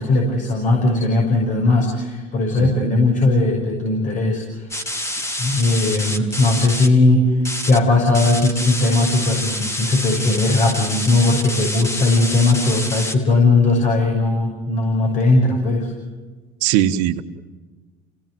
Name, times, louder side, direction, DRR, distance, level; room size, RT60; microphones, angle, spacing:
voice 1, 0.0-4.9 5.4-15.9, left 2 dB, 50° left, 0 dB, 6.5 m, -18 dB
voice 2, 2.6-2.9 16.6-17.2, right 12 dB, 80° right, 6 dB, 1.4 m, -20 dB
sound 1, 4.7-6.9 7.4-7.8 8.1-13.1, left 1 dB, 15° left, 2.4 m, -27 dB
29.0 x 18.0 x 8.0 m, 1.3 s
supercardioid pair, 95°, 17 cm